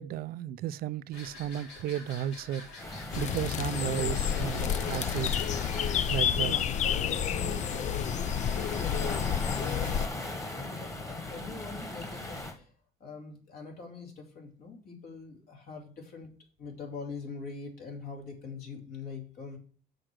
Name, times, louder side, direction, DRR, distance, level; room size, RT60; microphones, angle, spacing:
voice 1, 0.0-5.4 6.1-6.5, right 11 dB, 65° right, 0.4 m, -34 dB
sound 1, 1.1-6.4, left 3 dB, 80° left, 3.7 m, -47 dB
Waves surf, 2.8-12.6, left 1 dB, 15° left, 1.6 m, -38 dB
sound 2, 3.1-10.1, left 9 dB, 45° left, 0.4 m, -30 dB
voice 2, 5.9-12.7 13.0-16.3 16.6-19.6, left 4 dB, 65° left, 2.6 m, -44 dB
6.4 x 4.9 x 6.1 m
cardioid pair, 110°, 17 cm